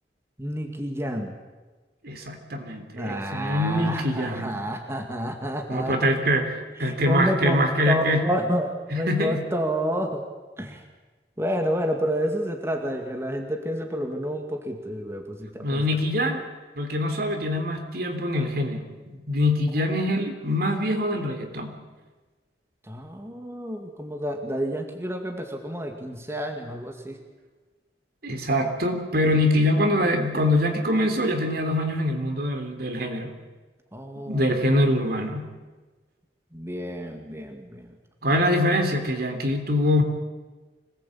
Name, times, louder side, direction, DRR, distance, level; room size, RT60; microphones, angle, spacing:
voice 1, 0.4-1.3 3.0-6.1 6.8-10.2 10.6-10.8 11.4-15.8 19.8-20.2 22.9-27.2 33.9-34.6 36.5-38.0, equal, 15° right, 3 dB, 2.3 m, -29 dB
voice 2, 2.0-4.6 5.7-8.2 8.9-9.5 15.6-16.5 16.8-21.8 28.2-33.3 34.3-35.5 38.2-40.0, left 1 dB, 60° right, 5 dB, 3.5 m, -24 dB
25.5 x 19.0 x 8.8 m, 1.3 s
head